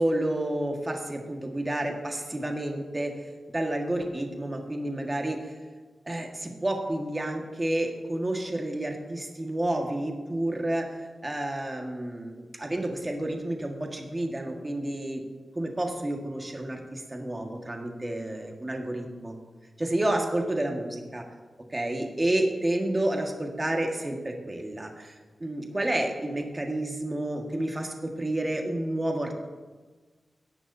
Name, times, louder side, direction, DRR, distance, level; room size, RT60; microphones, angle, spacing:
voice 1, 0.0-3.2 3.5-5.5 6.0-15.2 15.5-19.3 19.8-21.2 21.7-25.1 25.4-29.5, right 1 dB, 25° right, 2 dB, 1.6 m, -30 dB
16.5 x 11.0 x 2.7 m, 1.4 s
wide cardioid pair, 80°, 0 cm